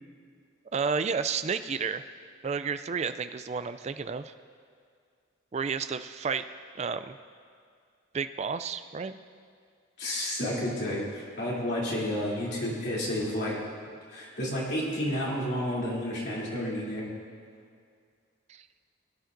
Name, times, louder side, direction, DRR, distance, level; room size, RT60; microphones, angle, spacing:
voice 1, 0.7-2.1 2.4-4.3 5.5-6.4 6.8-7.2 8.1-9.2 18.5-18.6, right 5 dB, 30° right, 10 dB, 0.3 m, -31 dB
voice 2, 10.0-13.5 14.1-17.1, left 1 dB, 55° left, -6 dB, 3.1 m, -31 dB
21.0 x 10.5 x 2.6 m, 2.2 s
head